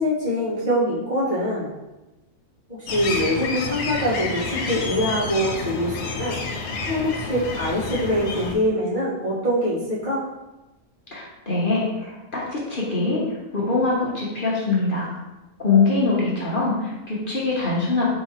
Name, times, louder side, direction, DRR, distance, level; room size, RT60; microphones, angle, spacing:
voice 1, 0.0-1.7 2.7-6.4 6.8-10.3, equal, 35° right, -9 dB, 1.5 m, -24 dB
sound 1, 2.9-8.5, left 4 dB, 80° left, 1.1 m, -29 dB
voice 2, 11.1-13.2 13.5-15.1 15.6-18.0, left 3 dB, 40° left, -5 dB, 1.0 m, -23 dB
4.8 x 3.4 x 2.9 m, 1.0 s
omnidirectional pair, 1.5 m